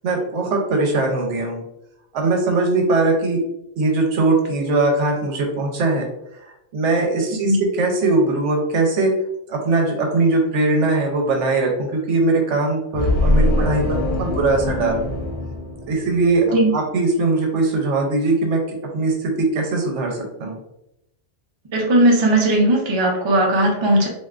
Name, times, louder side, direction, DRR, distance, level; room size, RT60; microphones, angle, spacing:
voice 1, 0.0-1.6 2.1-3.4 3.8-6.1 6.7-9.1 9.5-15.0 15.9-18.6 18.9-20.6, right 3 dB, 75° right, 1 dB, 1.0 m, -20 dB
sound 1, 12.9-16.4, left 1 dB, 55° left, 0.4 m, -22 dB
voice 2, 21.7-24.1, right 1 dB, 35° right, -1 dB, 0.5 m, -17 dB
3.3 x 2.6 x 2.4 m, 0.82 s
omnidirectional pair, 1.3 m